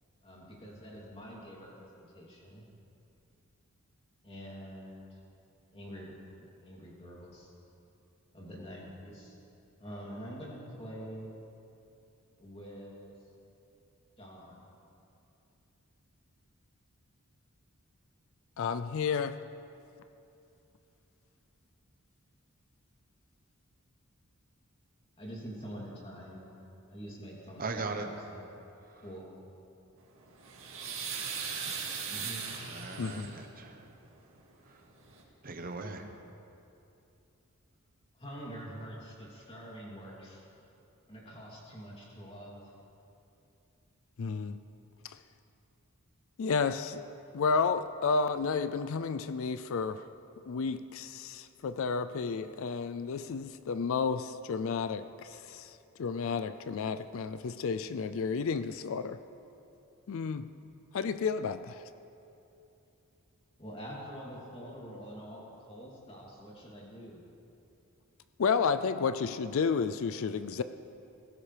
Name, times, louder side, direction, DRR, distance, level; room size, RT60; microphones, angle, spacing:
voice 1, 0.2-2.7 4.2-5.2 5.7-6.1 6.6-7.5 8.3-9.4 9.8-11.4 12.4-13.1 14.2-14.7 25.2-26.5 26.9-28.4 29.0-29.3 32.0-32.6 38.1-40.5 41.1-42.6 63.6-67.2, equal, 25° left, -4 dB, 3.0 m, -46 dB
voice 2, 18.6-19.4 33.0-33.3 44.2-44.6 45.0-45.2 46.4-47.1 47.3-50.0 50.5-59.2 60.1-60.5 60.9-61.8 68.4-70.6, left 5 dB, 65° left, 11 dB, 0.4 m, -31 dB
voice 3, 27.6-28.1 32.7-33.8 35.4-36.1, right 3 dB, 40° right, 5 dB, 1.0 m, -38 dB
sound 1, 30.2-33.5 34.7-34.8 35.1-35.2, right 6 dB, 65° right, 2.2 m, -38 dB
19.0 x 16.5 x 3.4 m, 2.8 s
head